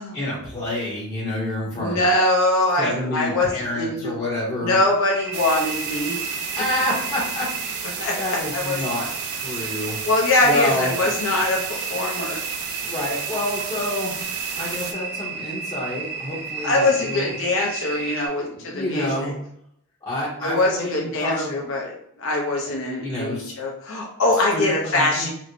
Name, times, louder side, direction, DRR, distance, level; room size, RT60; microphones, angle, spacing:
voice 1, 0.1-2.0 2.8-4.8 6.5-7.5 8.2-10.0 10.4-11.0 12.8-14.1 14.5-17.3 18.4-19.4 20.0-21.6 22.6-23.5 24.5-25.3, left 1 dB, 25° left, -8 dB, 0.7 m, -28 dB
voice 2, 1.8-4.1 4.6-6.2 8.0-8.8 10.0-12.4 16.6-19.3 20.4-25.3, left 2 dB, 60° left, -1 dB, 0.6 m, -23 dB
sound 1, 5.1-18.3, right 4 dB, 10° right, 0.7 m, -33 dB
sound 2, 5.3-14.9, right 6 dB, 65° right, 0.5 m, -33 dB
4.4 x 2.1 x 2.6 m, 0.72 s
head